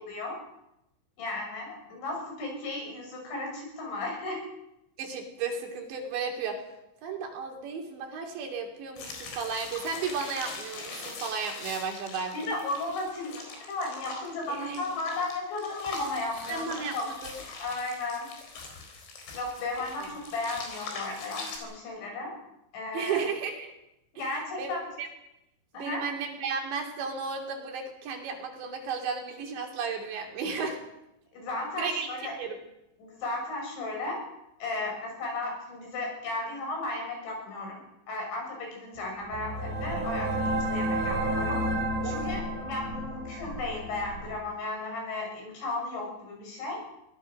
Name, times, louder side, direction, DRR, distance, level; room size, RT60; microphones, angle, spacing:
voice 1, 0.1-0.4 1.2-4.4 12.3-18.3 19.3-22.3 22.7-23.2 24.1-24.8 25.7-26.0 31.3-32.3 33.0-34.2 34.6-37.8 38.1-41.6 42.0-46.8, left 2 dB, 70° left, 1 dB, 8.8 m, -35 dB
voice 2, 5.0-6.6 7.0-12.3 14.5-14.8 16.5-17.0 17.2-17.3 20.0-20.1 22.9-23.7 24.2-24.3 24.6-24.7 25.0-25.1 25.8-30.8 31.8-32.1 32.4-32.6 42.0-42.2, right 5 dB, 70° right, 3 dB, 5.0 m, -34 dB
sound 1, 9.0-21.6, left 4 dB, 85° left, 6.7 m, -42 dB
sound 2, 39.0-44.4, right 1 dB, 45° right, 4.3 m, -31 dB
23.5 x 19.0 x 6.5 m, 0.87 s
omnidirectional pair, 5.5 m